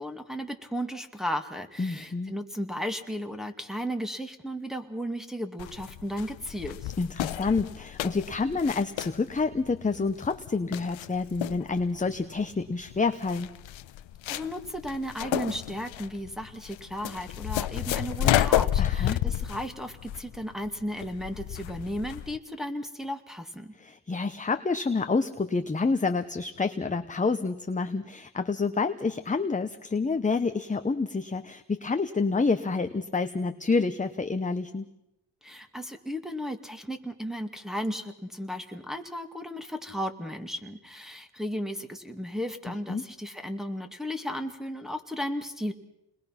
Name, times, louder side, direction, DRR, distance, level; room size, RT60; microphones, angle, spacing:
voice 1, 0.0-6.9 14.3-23.7 35.4-45.7, equal, ahead, 7 dB, 2.1 m, -35 dB
voice 2, 1.8-2.3 7.0-13.5 18.8-19.2 23.8-34.8 42.7-43.0, left 4 dB, 15° left, 8 dB, 0.9 m, -28 dB
sound 1, 5.6-22.4, left 12 dB, 75° left, 0.9 m, -31 dB
29.0 x 21.0 x 5.9 m, 0.86 s
cardioid pair, 90°, 47 cm